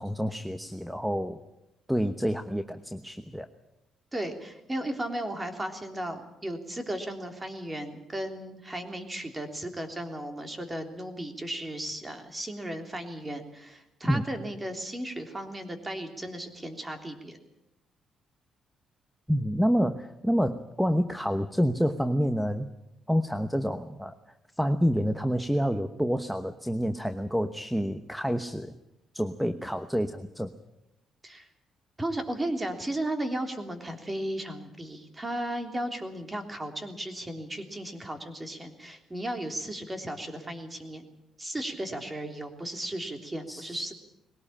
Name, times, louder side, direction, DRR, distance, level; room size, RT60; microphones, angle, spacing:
voice 1, 0.0-1.4 1.9-3.5 14.1-14.2 19.3-22.7 23.1-24.1 24.6-28.7 29.1-30.5 43.5-43.8, equal, ahead, 10 dB, 1.1 m, -28 dB
voice 2, 4.1-17.4 31.2-31.5 32.0-41.1 41.4-43.9, right 1 dB, 20° right, 6 dB, 3.3 m, -35 dB
21.0 x 18.0 x 8.7 m, 0.87 s
cardioid pair, 90°, 0 cm